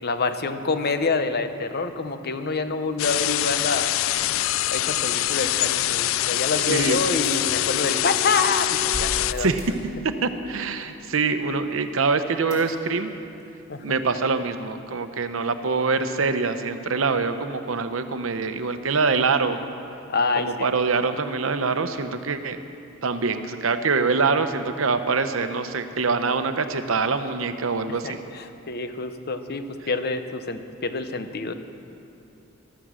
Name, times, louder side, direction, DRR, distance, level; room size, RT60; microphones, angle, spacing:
voice 1, 0.0-3.9 4.7-9.5 13.7-13.8 20.1-20.5 28.0-31.5, left 4 dB, 50° left, 9 dB, 0.9 m, -27 dB
sound 1, 3.0-9.3, left 15 dB, 70° left, 0.3 m, -24 dB
Wind instrument woodwind instrument, 6.1-11.2, left 1 dB, 15° right, 1.4 m, -39 dB
voice 2, 6.7-7.0 9.4-9.6 10.0-13.1 13.8-19.6 20.4-22.6 23.0-28.2, right 4 dB, 70° right, 9 dB, 0.8 m, -24 dB
sound 2, 7.2-8.2 8.9-9.8 12.5-13.1 13.4-13.5 13.7-13.8, equal, 15° left, 3.8 m, -37 dB
15.5 x 13.0 x 6.3 m, 2.8 s
head